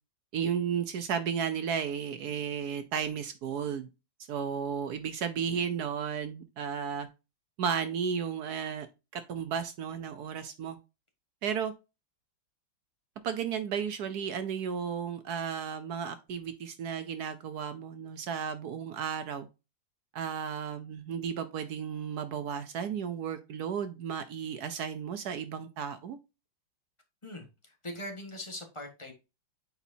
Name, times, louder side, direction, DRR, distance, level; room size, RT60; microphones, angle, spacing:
voice 1, 0.3-3.9 4.3-7.1 7.6-8.9 9.1-10.8 11.4-11.7 13.2-19.5 20.1-26.2, right 7 dB, 70° right, 1.0 m, -34 dB
voice 2, 27.2-29.1, left 1 dB, 20° left, 1.1 m, -41 dB
8.1 x 4.3 x 2.7 m
omnidirectional pair, 2.2 m